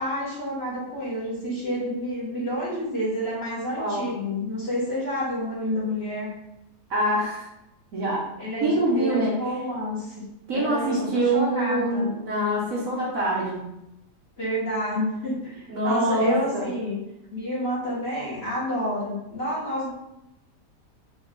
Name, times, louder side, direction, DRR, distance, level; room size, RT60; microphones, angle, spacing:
voice 1, 0.0-6.3 8.4-12.1 14.4-17.0 17.3-19.9, equal, 40° left, -7 dB, 1.6 m, -29 dB
voice 2, 3.8-4.1 6.9-7.5 7.9-8.3 8.6-9.3 10.5-13.7 15.7-16.7, right 1 dB, 60° right, -4 dB, 1.2 m, -25 dB
3.8 x 3.0 x 3.7 m, 0.88 s
omnidirectional pair, 1.8 m